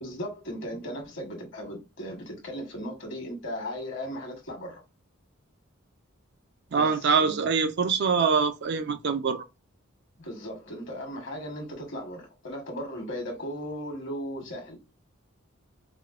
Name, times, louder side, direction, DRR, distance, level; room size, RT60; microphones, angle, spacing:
voice 1, 0.0-4.8 6.7-7.4 10.2-14.8, equal, 60° left, 1.3 m, -37 dB
voice 2, 6.7-9.4, right 5 dB, 55° right, 0.5 m, -24 dB
4.8 x 2.1 x 2.4 m
head